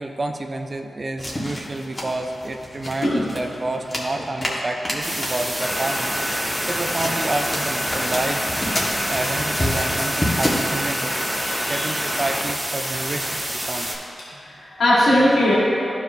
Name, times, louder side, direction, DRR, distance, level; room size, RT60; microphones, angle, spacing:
voice 1, 0.0-8.5 9.1-13.9, right 2 dB, 45° right, 4 dB, 0.5 m, -29 dB
sound 1, 1.2-10.7, left 1 dB, 30° left, 1.5 m, -30 dB
sound 2, 5.0-14.0, right 1 dB, 20° right, 1.7 m, -28 dB
sound 3, 5.6-13.4, left 1 dB, 15° left, 0.4 m, -29 dB
voice 2, 11.4-11.8 14.3-15.5, left 1 dB, 85° left, -8 dB, 1.5 m, -19 dB
12.5 x 4.8 x 2.7 m, 2.8 s
cardioid pair, 45°, 0 cm